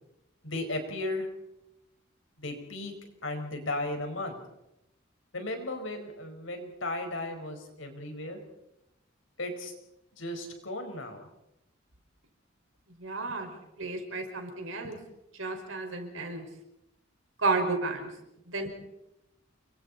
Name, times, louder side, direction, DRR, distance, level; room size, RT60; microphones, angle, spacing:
voice 1, 0.4-1.3 2.4-2.9 3.2-4.4 5.3-8.4 9.4-9.7 10.1-11.3 13.3-13.4 14.8-14.9, left 2 dB, 75° left, 5 dB, 5.1 m, -35 dB
voice 2, 13.0-15.0 15.4-16.5 17.4-18.1 18.5-18.7, right 3 dB, 90° right, 4 dB, 5.3 m, -32 dB
30.0 x 23.0 x 4.3 m, 0.87 s
head